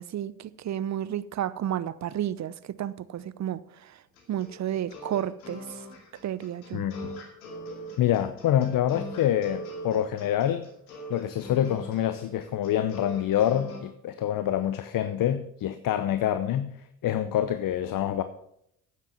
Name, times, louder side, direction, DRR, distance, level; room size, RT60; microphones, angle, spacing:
voice 1, 0.0-3.9 4.3-5.6 6.2-6.8, right 11 dB, 40° right, 0.7 m, -32 dB
sound 1, 4.2-13.8, equal, 90° left, 2.5 m, -42 dB
voice 2, 6.7-7.1 8.0-10.7 11.1-16.8 17.0-18.2, left 11 dB, 50° left, 0.8 m, -26 dB
9.2 x 7.6 x 6.9 m
hypercardioid pair, 65°, 43 cm